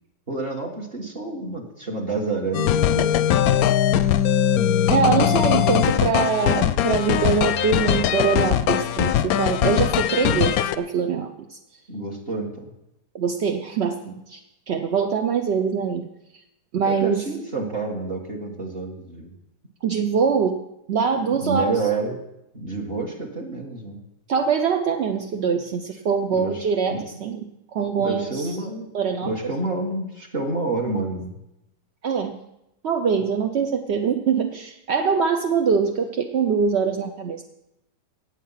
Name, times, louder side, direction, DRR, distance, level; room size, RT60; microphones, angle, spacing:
voice 1, 0.3-3.4 11.9-12.7 16.8-19.3 21.3-22.2 22.5-24.0 26.3-27.0 28.0-28.9 29.2-31.4, right 3 dB, 35° right, 2 dB, 1.8 m, -29 dB
sound 1, 2.5-10.8, left 10 dB, 70° left, 0.9 m, -20 dB
voice 2, 4.9-11.6 13.1-14.4 14.7-16.1 16.7-17.3 19.8-20.6 20.9-21.7 24.3-28.6 28.9-29.3 32.0-32.4 32.8-37.4, right 6 dB, 55° right, 5 dB, 0.7 m, -23 dB
17.5 x 7.5 x 5.7 m, 0.89 s
omnidirectional pair, 1.9 m